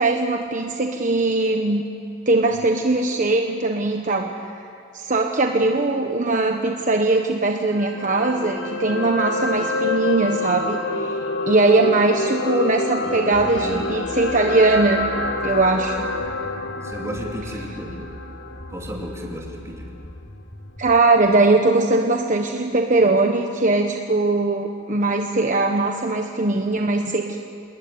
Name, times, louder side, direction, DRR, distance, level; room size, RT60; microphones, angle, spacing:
voice 1, 0.0-1.8 2.3-4.3 4.9-10.8 11.5-15.1 15.4-16.1 20.8-27.4, right 2 dB, 40° right, 3 dB, 1.3 m, -20 dB
sound 1, 7.7-20.0 20.4-20.5, left 2 dB, 65° left, 2.1 m, -28 dB
voice 2, 13.0-13.9 16.8-18.0 18.7-19.9, equal, 15° right, -1 dB, 3.7 m, -33 dB
sound 2, 13.3-21.0, left 1 dB, 20° left, 1.3 m, -41 dB
27.5 x 20.5 x 9.7 m, 2.5 s
head